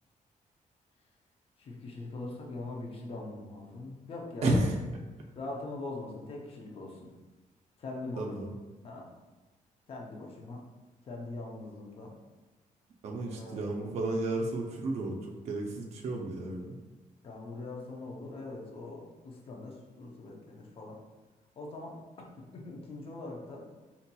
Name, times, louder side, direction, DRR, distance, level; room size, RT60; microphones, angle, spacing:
voice 1, 1.6-4.6 5.4-7.1 7.8-8.4 8.8-9.1 9.9-10.6 11.0-12.1 13.3-13.6 17.2-21.0 21.6-22.0 22.4-23.7, left 2 dB, 40° left, -1 dB, 0.5 m, -42 dB
voice 2, 4.4-4.8 8.2-8.5 13.0-16.8, right 2 dB, 50° right, 0 dB, 0.4 m, -32 dB
3.9 x 2.8 x 2.2 m, 1.2 s
wide cardioid pair, 180°, 14 cm